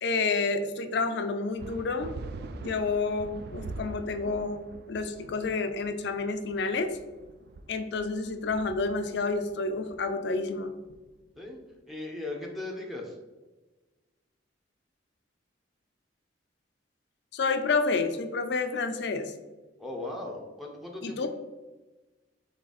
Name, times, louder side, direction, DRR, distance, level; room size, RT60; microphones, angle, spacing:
voice 1, 0.0-2.1 2.6-4.6 4.9-7.0 7.7-10.7 17.3-19.3 21.0-21.3, left 4 dB, 65° left, 8 dB, 0.4 m, -29 dB
sound 1, 1.6-11.5, right 3 dB, 60° right, 0.3 m, -44 dB
voice 2, 11.9-13.2 19.8-21.3, left 2 dB, ahead, -1 dB, 0.5 m, -38 dB
3.7 x 3.3 x 4.0 m, 1.2 s
head